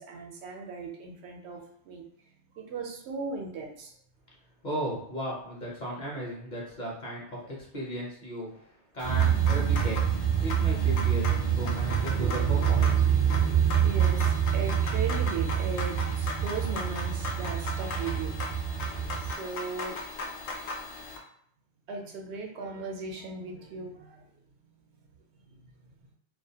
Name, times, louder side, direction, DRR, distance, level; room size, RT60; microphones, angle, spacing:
voice 1, 0.0-2.0 2.5-3.9 13.8-18.4 18.8-20.4 21.9-24.3 25.5-25.6, right 4 dB, 80° right, 1 dB, 0.9 m, -38 dB
voice 2, 4.6-10.0 10.4-13.1, equal, 50° left, -3 dB, 0.8 m, -36 dB
sound 1, 9.0-21.2, left 2 dB, 85° left, 0.9 m, -38 dB
sound 2, 9.0-19.3, right 9 dB, 55° right, 0.4 m, -26 dB
2.4 x 2.1 x 2.7 m, 0.65 s
omnidirectional pair, 1.1 m